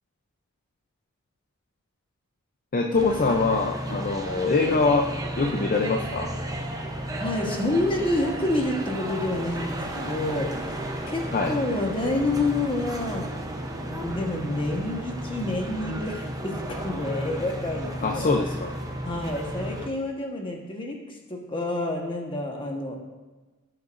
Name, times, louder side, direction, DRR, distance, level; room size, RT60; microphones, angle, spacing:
voice 1, 2.7-5.1 5.4-6.3 11.3-11.6 18.0-18.7, left 3 dB, 40° left, 2 dB, 0.6 m, -23 dB
sound 1, 2.9-19.9, right 1 dB, 15° right, 0.8 m, -33 dB
voice 2, 7.2-10.6 11.1-13.3 13.9-18.4 19.0-23.0, left 2 dB, 25° left, 1 dB, 1.3 m, -28 dB
16.5 x 6.7 x 2.6 m, 1.2 s
head